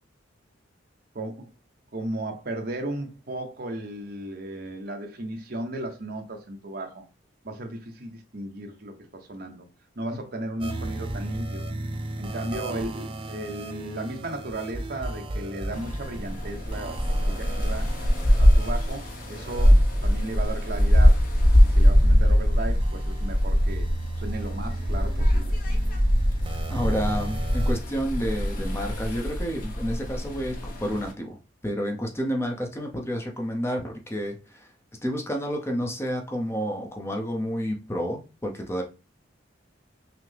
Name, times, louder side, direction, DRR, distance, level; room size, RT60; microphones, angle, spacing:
voice 1, 1.1-1.5 1.9-7.0 7.4-9.7 10.0-11.7 12.2-17.0 17.3-17.9 18.4-23.9 24.2-25.6, right 1 dB, 50° right, 0.8 m, -35 dB
sound 1, 10.6-27.8, right 2 dB, 25° right, 0.4 m, -36 dB
sound 2, 15.7-31.1, equal, 45° left, 0.8 m, -22 dB
voice 2, 26.7-31.4 31.6-34.7 35.0-38.8, equal, 15° left, 0.6 m, -30 dB
5.8 x 2.0 x 3.3 m
head